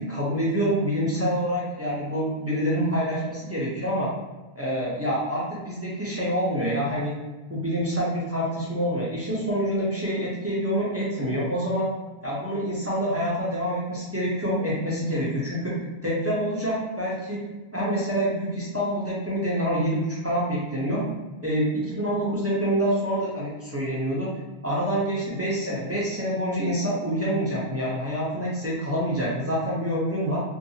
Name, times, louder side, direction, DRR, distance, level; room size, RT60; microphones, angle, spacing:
voice 1, 0.0-4.1 4.6-7.2 7.5-11.9 12.2-17.4 17.7-21.0 21.4-24.3 24.6-30.4, equal, 20° right, -7 dB, 0.4 m, -26 dB
2.6 x 2.2 x 2.7 m, 1.1 s
omnidirectional pair, 1.1 m